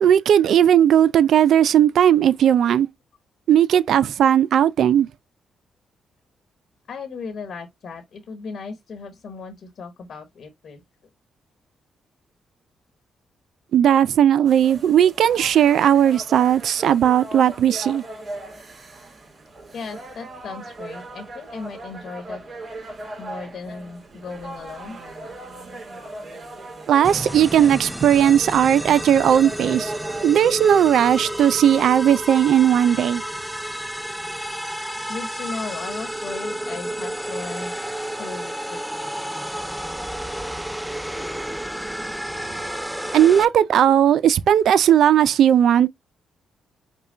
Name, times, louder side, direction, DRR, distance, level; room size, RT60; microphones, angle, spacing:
voice 1, 0.0-2.9 3.5-5.1 13.7-18.0 26.9-29.9 30.2-33.2 43.1-45.9, right 10 dB, 70° right, 0.4 m, -17 dB
voice 2, 6.9-10.8 19.7-22.4 23.2-25.0 35.1-37.8 38.2-39.1, left 4 dB, 65° left, 1.1 m, -36 dB
sound 1, 14.5-31.5, right 1 dB, 55° right, 2.5 m, -39 dB
sound 2, 27.0-43.4, equal, 5° right, 0.4 m, -31 dB
5.5 x 2.2 x 3.8 m
cardioid pair, 70°, 0 cm